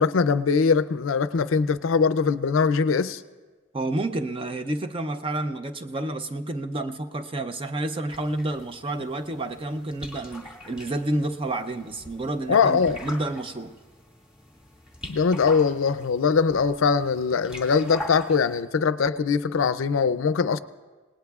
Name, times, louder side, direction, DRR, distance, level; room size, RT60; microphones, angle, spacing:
voice 1, 0.0-3.2 12.5-13.0 15.1-20.6, left 5 dB, 80° left, 0.5 m, -22 dB
voice 2, 3.7-13.7, right 2 dB, 25° right, 0.6 m, -29 dB
sound 1, 8.1-18.6, left 1 dB, 5° right, 2.1 m, -43 dB
26.5 x 19.0 x 2.4 m
head